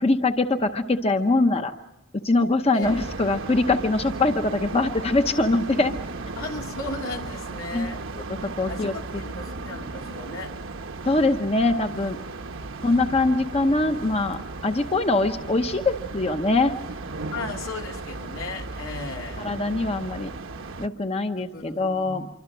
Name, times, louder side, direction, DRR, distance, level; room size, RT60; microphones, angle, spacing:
voice 1, 0.0-1.7 2.1-5.9 7.7-7.9 8.6-8.9 11.1-12.2 12.8-16.7 19.4-20.3 20.8-22.3, left 2 dB, 30° left, 7 dB, 0.8 m, -23 dB
sound 1, 2.8-20.9, right 3 dB, 70° right, 1.1 m, -36 dB
voice 2, 6.4-8.0 8.7-10.5 17.3-19.5 21.3-22.3, left 3 dB, 85° left, 1 dB, 3.1 m, -36 dB
26.0 x 24.5 x 6.1 m, 1.0 s
head